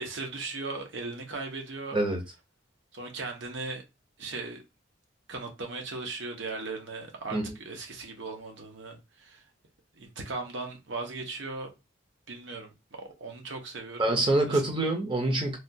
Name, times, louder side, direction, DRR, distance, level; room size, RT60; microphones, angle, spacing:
voice 1, 0.0-2.0 2.9-3.8 4.2-4.6 5.3-9.4 10.0-11.7 12.3-12.7 13.0-14.1 14.5-14.6, right 3 dB, 70° right, 0.8 m, -38 dB
voice 2, 14.0-15.6, right 2 dB, 25° right, 0.6 m, -26 dB
3.3 x 2.3 x 2.7 m
head